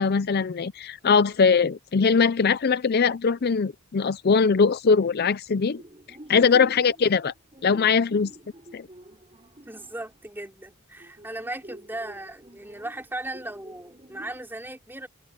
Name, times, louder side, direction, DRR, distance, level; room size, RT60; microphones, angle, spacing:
voice 1, 0.0-5.8 6.3-7.3 7.6-8.3 8.7-8.9, left 5 dB, 45° left, 0.5 m, -21 dB
sound 1, 5.8-10.4 11.0-14.4, right 1 dB, 25° right, 5.6 m, -47 dB
voice 2, 9.7-15.1, right 1 dB, 10° right, 3.7 m, -37 dB
head